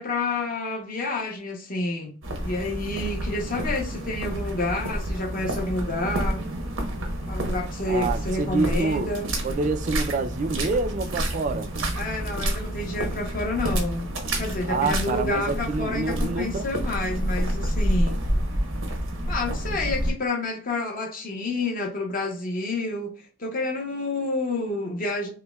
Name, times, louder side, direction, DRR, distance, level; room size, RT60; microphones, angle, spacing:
voice 1, 0.0-2.1 2.4-6.4 7.3-9.3 12.0-14.1 14.4-18.2 19.3-25.3, left 2 dB, 45° left, 0.8 m, -29 dB
sound 1, 2.2-20.1, right 1 dB, 85° right, 0.9 m, -29 dB
voice 2, 7.9-9.1 9.4-11.7 14.7-16.7, right 3 dB, 40° right, 0.3 m, -27 dB
5.4 x 2.1 x 2.3 m
head